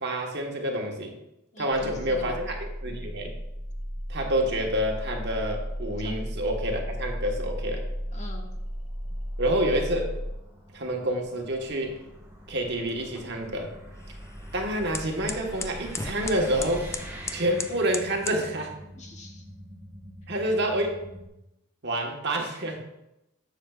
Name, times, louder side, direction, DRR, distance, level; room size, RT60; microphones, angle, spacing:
voice 1, 0.0-1.2 1.6-2.5 2.8-3.3 4.1-7.8 9.4-10.1 10.7-12.0 12.5-13.7 14.5-16.9 17.3-18.8 20.3-21.0 21.8-22.8, right 1 dB, 55° right, 1 dB, 1.3 m, -28 dB
voice 2, 1.5-2.4 6.0-6.2 8.1-8.5 18.9-19.4 20.5-20.6, left 2 dB, 35° left, 1 dB, 1.2 m, -44 dB
sound 1, 1.7-21.3, equal, 35° right, 1.2 m, -38 dB
sound 2, 7.9-18.6, right 1 dB, 10° right, 1.6 m, -45 dB
sound 3, 11.7-18.5, left 4 dB, 15° left, 0.3 m, -40 dB
10.5 x 7.3 x 2.4 m, 0.88 s
head